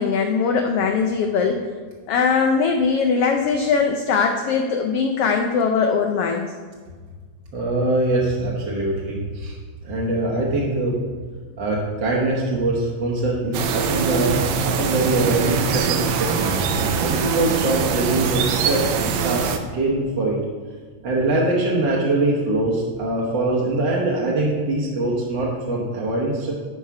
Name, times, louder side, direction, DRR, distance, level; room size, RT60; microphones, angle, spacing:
voice 1, 0.0-1.7 2.1-6.5, left 5 dB, 90° left, 3 dB, 1.3 m, -20 dB
voice 2, 7.5-9.5 9.8-10.9 11.6-20.4 21.0-26.5, right 2 dB, 55° right, -4 dB, 1.4 m, -23 dB
sound 1, 13.5-19.6, right 6 dB, 75° right, 1.9 m, -23 dB
11.5 x 4.8 x 4.7 m, 1.5 s
omnidirectional pair, 3.3 m